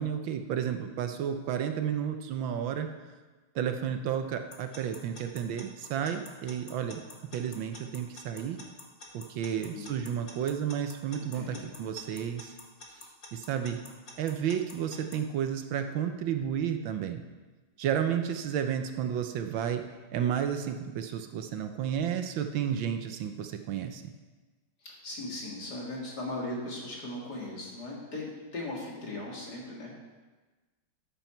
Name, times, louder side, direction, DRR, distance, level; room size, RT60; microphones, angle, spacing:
voice 1, 0.0-2.9 3.5-7.0 7.3-8.6 9.1-12.5 13.3-13.8 14.2-17.2 17.8-19.8 20.1-24.0, right 9 dB, 75° right, 7 dB, 1.5 m, -32 dB
Alarm / Clock, 4.5-15.2, left 3 dB, 35° left, 1.6 m, -47 dB
voice 2, 9.6-10.2 11.1-11.8 24.8-30.0, left 2 dB, 50° left, -3 dB, 2.9 m, -39 dB
12.5 x 9.1 x 4.5 m, 1.3 s
omnidirectional pair, 2.2 m